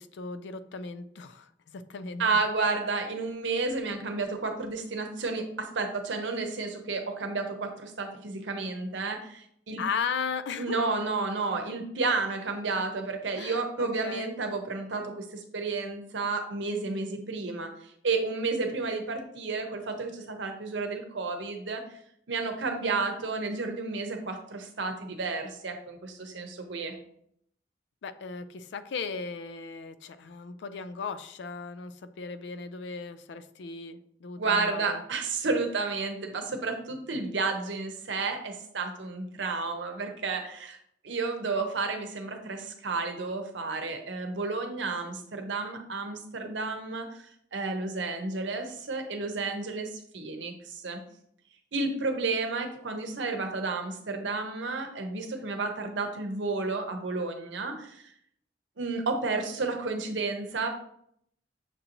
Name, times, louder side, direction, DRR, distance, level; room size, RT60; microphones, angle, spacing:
voice 1, 0.0-2.2 9.8-10.8 13.3-14.3 28.0-35.0, left 5 dB, 80° left, 12 dB, 0.4 m, -37 dB
voice 2, 2.2-9.8 10.6-22.0 22.3-26.9 34.4-40.8 41.0-47.3 47.5-51.0 51.7-58.0 58.8-60.7, right 3 dB, 90° right, 5 dB, 0.7 m, -31 dB
6.6 x 2.6 x 2.9 m, 0.69 s
head